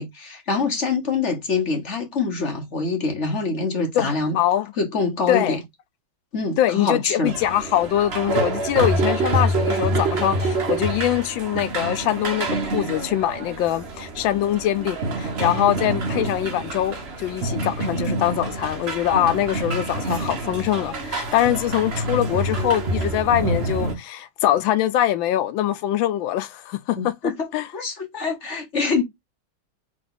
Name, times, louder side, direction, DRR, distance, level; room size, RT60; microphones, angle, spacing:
voice 1, 0.0-4.4 4.8-5.6 6.3-7.3 26.9-27.5 27.7-29.0, left 4 dB, 40° left, 1.3 m, -25 dB
voice 2, 4.3-4.7 5.3-5.6 6.6-27.1 27.5-27.7, left 12 dB, 75° left, 1.3 m, -23 dB
sound 1, 7.3-23.9, right 2 dB, 40° right, 1.0 m, -26 dB
3.8 x 3.6 x 3.8 m
omnidirectional pair, 2.2 m